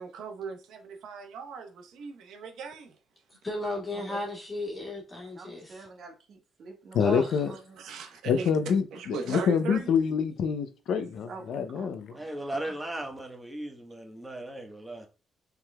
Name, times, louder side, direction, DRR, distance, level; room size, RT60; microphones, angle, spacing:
voice 1, 0.0-3.0 7.8-8.5 8.9-9.9, right 5 dB, 80° right, 1.0 m, -38 dB
voice 2, 3.4-5.9 7.0-7.4, left 1 dB, 25° left, 1.7 m, -35 dB
voice 3, 5.3-7.8 10.9-12.4 12.7-12.8, right 3 dB, 60° right, 1.7 m, -48 dB
voice 4, 6.9-7.5 8.2-12.1, left 6 dB, 70° left, 0.6 m, -26 dB
voice 5, 12.1-15.1, right 1 dB, 10° right, 1.3 m, -37 dB
5.8 x 3.7 x 2.2 m
cardioid pair, 90°, 0 cm